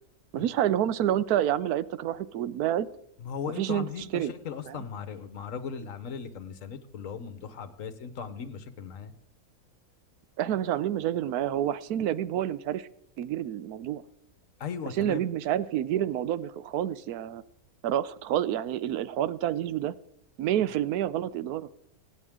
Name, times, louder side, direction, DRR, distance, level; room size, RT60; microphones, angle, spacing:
voice 1, 0.3-2.9 3.6-3.9 4.1-4.3 4.7-4.8 10.4-12.9 13.2-14.0 15.0-17.4 17.8-19.9 20.4-21.7, right 11 dB, 80° right, 16 dB, 1.1 m, -28 dB
voice 2, 3.2-9.1 14.6-15.2, left 6 dB, 60° left, 11 dB, 1.4 m, -38 dB
26.0 x 8.9 x 3.7 m, 0.76 s
omnidirectional pair, 1.6 m